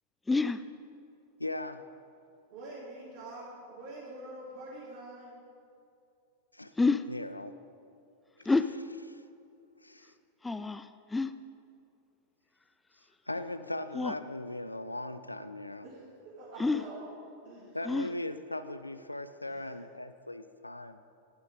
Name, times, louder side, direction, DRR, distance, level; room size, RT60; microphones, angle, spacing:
voice 1, 0.3-0.6 6.8-7.0 8.5-8.7 10.4-11.3 14.0-14.1 16.6-16.8 17.9-18.1, left 3 dB, 10° left, 12 dB, 0.4 m, -28 dB
voice 2, 1.4-1.8 6.5-6.7 7.1-7.6 8.4-8.5 9.1-9.2 9.8-10.1 13.3-15.8 17.7-21.0, left 1 dB, 90° left, 12 dB, 0.4 m, -39 dB
voice 3, 2.5-5.4 15.8-17.1 17.4-17.8 19.4-19.8, right 2 dB, 50° right, -9 dB, 3.0 m, -46 dB
12.0 x 8.0 x 5.2 m, 2.5 s
figure-of-eight pair, 95°, 0 cm